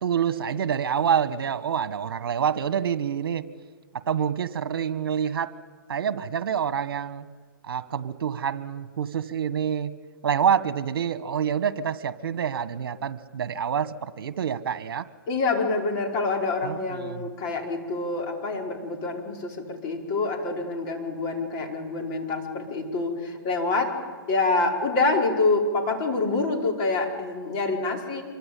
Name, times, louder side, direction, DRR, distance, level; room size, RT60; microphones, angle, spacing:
voice 1, 0.0-3.4 4.1-5.5 5.9-7.2 7.6-9.9 10.2-15.1 16.6-17.3, right 8 dB, 65° right, 13 dB, 1.7 m, -27 dB
voice 2, 15.3-23.9 24.3-28.2, left 3 dB, 30° left, 1 dB, 4.9 m, -26 dB
26.0 x 24.5 x 8.7 m, 1.5 s
hypercardioid pair, 145°, 13 cm